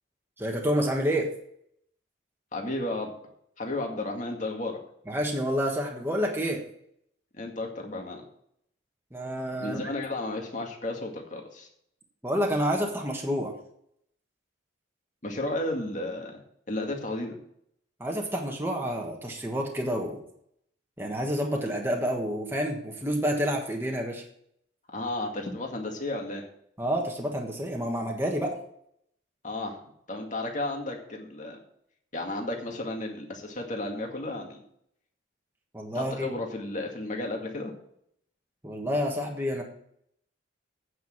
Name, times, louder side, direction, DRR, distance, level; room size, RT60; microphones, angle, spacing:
voice 1, 0.4-1.3 5.1-6.6 9.1-9.8 12.2-13.5 18.0-20.2 21.0-24.2 26.8-28.6 35.7-36.3 38.6-39.6, equal, 10° right, 0 dB, 1.4 m, -29 dB
voice 2, 2.5-3.1 3.6-4.8 7.3-8.2 9.6-11.7 15.2-16.4 16.7-17.4 24.9-26.4 29.4-29.8 30.1-31.6 32.1-34.6 35.9-37.7, left 2 dB, 40° left, 2 dB, 2.0 m, -33 dB
9.2 x 6.3 x 7.5 m, 0.69 s
head